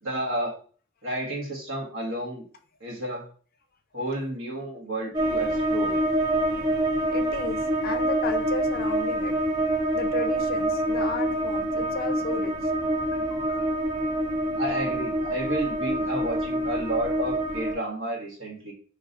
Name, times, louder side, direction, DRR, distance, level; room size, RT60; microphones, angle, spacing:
voice 1, 0.0-0.5 1.0-2.4 2.8-3.3 3.9-6.0 14.6-18.7, right 1 dB, 75° right, -2 dB, 1.4 m, -31 dB
sound 1, 5.1-17.8, right 1 dB, 20° right, 0.4 m, -26 dB
voice 2, 7.1-9.3 9.8-12.5 13.1-13.7, left 3 dB, 50° left, 7 dB, 0.5 m, -34 dB
5.2 x 3.0 x 2.6 m, 0.41 s
head